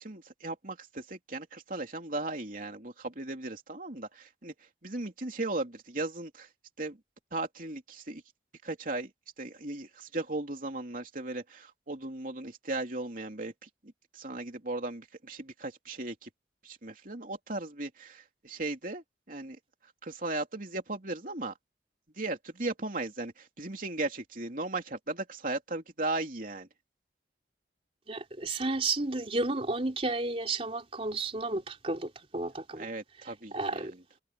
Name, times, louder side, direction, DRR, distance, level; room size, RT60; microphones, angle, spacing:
voice 1, 0.0-4.5 4.8-6.5 6.8-7.0 7.3-8.2 8.6-9.1 9.4-13.7 14.1-16.3 16.6-19.6 20.0-21.5 22.2-26.7 32.8-34.0, right 2 dB, 50° right, 3.1 m, -37 dB
voice 2, 28.1-32.9 33.2-33.9, right 2 dB, 35° right, 3.6 m, -32 dB
head